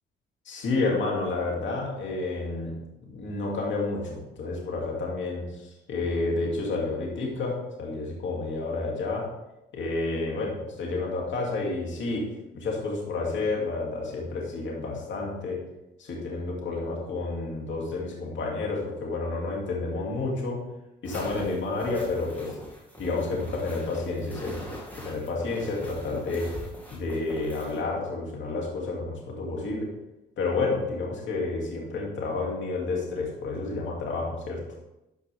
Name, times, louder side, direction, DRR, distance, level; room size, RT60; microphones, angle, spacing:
voice 1, 0.4-2.7 3.0-9.3 9.7-12.3 12.5-15.6 16.0-20.6 21.0-22.6 23.0-24.7 25.0-26.5 26.9-29.9 30.4-34.6, left 3 dB, 70° left, -2 dB, 2.6 m, -30 dB
sound 1, 21.0-27.8, equal, 10° left, 2.4 m, -42 dB
12.5 x 5.2 x 3.5 m, 0.93 s
cardioid pair, 90°, 20 cm